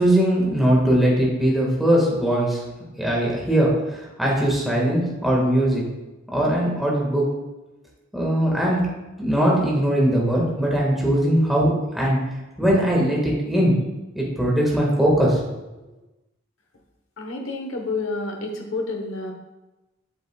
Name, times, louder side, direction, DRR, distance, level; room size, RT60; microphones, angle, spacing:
voice 1, 0.0-2.6 3.0-5.8 6.3-7.3 8.1-8.9 9.2-12.2 12.6-13.7 14.1-15.4, right 1 dB, ahead, -4 dB, 1.7 m, -20 dB
voice 2, 17.2-19.3, left 3 dB, 85° left, 3 dB, 1.1 m, -29 dB
7.9 x 6.9 x 2.3 m, 1.1 s
head